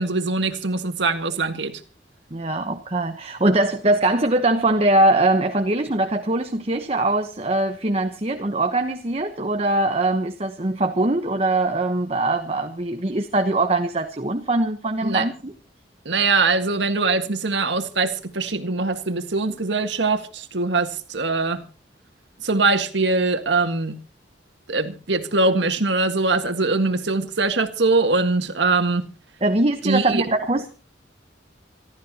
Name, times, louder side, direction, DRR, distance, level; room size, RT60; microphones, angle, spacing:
voice 1, 0.0-1.8 15.0-15.3 16.1-21.6 22.4-24.0 24.7-29.1 29.8-30.3, right 3 dB, 75° right, 1.8 m, -22 dB
voice 2, 2.3-15.5 29.4-30.7, right 2 dB, 35° right, 1.1 m, -22 dB
27.5 x 13.0 x 2.9 m
head